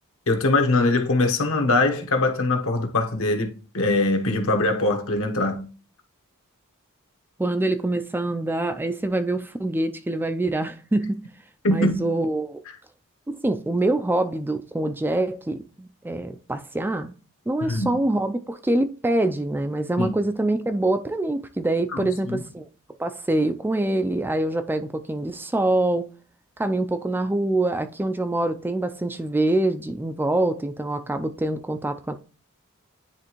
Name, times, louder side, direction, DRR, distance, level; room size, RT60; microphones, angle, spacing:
voice 1, 0.3-5.7 11.6-12.1 17.6-18.0 20.0-20.2 21.9-22.4, left 2 dB, 65° left, 1.2 m, -22 dB
voice 2, 7.4-11.2 11.7-12.6 13.3-17.1 17.5-22.7 23.0-26.1 26.6-32.1, right 2 dB, 10° right, 0.3 m, -25 dB
9.9 x 3.4 x 3.0 m
head